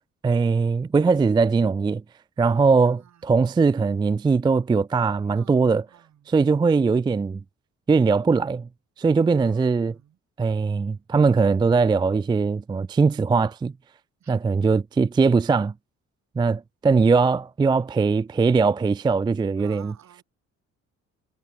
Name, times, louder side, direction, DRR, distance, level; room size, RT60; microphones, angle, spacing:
voice 1, 0.2-2.0 2.4-5.8 6.3-7.4 7.9-8.7 9.0-10.0 10.4-13.7 14.3-15.7 16.4-19.9, right 4 dB, 15° right, 0.3 m, -21 dB
voice 2, 2.8-3.5 5.3-6.3 9.4-10.2 14.2-14.3 19.6-20.2, right 10 dB, 65° right, 5.0 m, -52 dB
cardioid pair, 90°, 30 cm